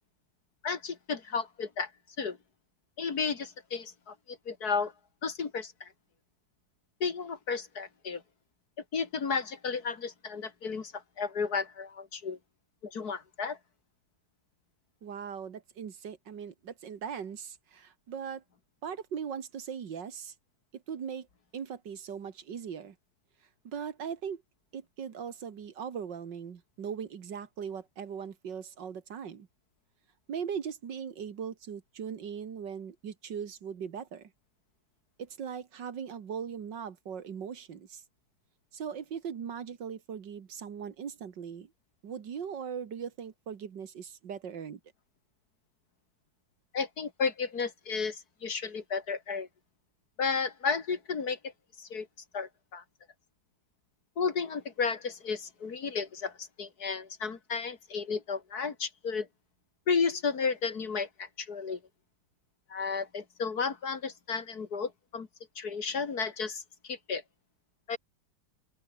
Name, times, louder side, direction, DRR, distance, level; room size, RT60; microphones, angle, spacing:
voice 1, 0.6-1.9 2.2-2.4 3.0-4.9 5.2-5.9 7.0-8.2 8.9-12.4 12.8-13.6 46.7-49.5 50.2-51.4 51.8-52.1 52.3-52.8 54.2-59.3 59.9-61.8 62.7-65.3 65.6-67.2 67.9-68.0, left 5 dB, 55° left, 2.4 m, -33 dB
voice 2, 15.0-18.4 18.8-20.3 20.7-21.3 21.5-23.0 23.6-24.4 24.7-29.5 30.3-34.3 35.2-38.0 38.7-41.7 42.0-44.8, right 7 dB, 70° right, 2.2 m, -39 dB
open air
omnidirectional pair, 2.1 m